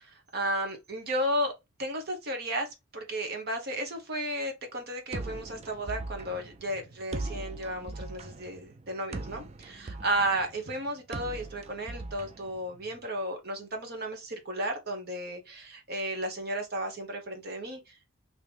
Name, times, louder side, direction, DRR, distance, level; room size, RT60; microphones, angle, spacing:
voice 1, 0.0-1.5 1.8-18.0, right 1 dB, 50° right, 1.0 m, -33 dB
sound 1, 5.1-13.0, right 3 dB, 30° right, 0.3 m, -40 dB
3.1 x 2.9 x 3.2 m
head